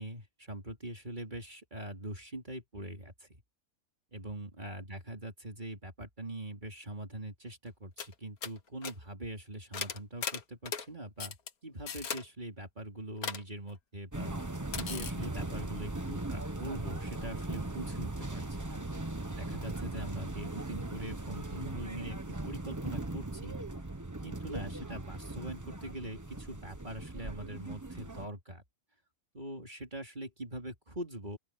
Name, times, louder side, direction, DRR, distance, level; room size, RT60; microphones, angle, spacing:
voice 1, 0.0-3.3 4.1-11.4 11.6-14.3 14.7-18.8 19.4-22.2 22.5-23.6 24.2-28.6 29.3-31.4, right 1 dB, 30° right, 3.9 m, -43 dB
sound 1, 7.7-7.8 8.0-8.1 8.4-8.6 8.8-8.9 9.7-10.9 11.2-11.5 11.9-12.2 13.2-13.4 14.7-15.1, left 7 dB, 80° left, 1.8 m, -37 dB
sound 2, 14.1-28.3, right 2 dB, 15° right, 1.1 m, -39 dB
open air
omnidirectional pair, 1.5 m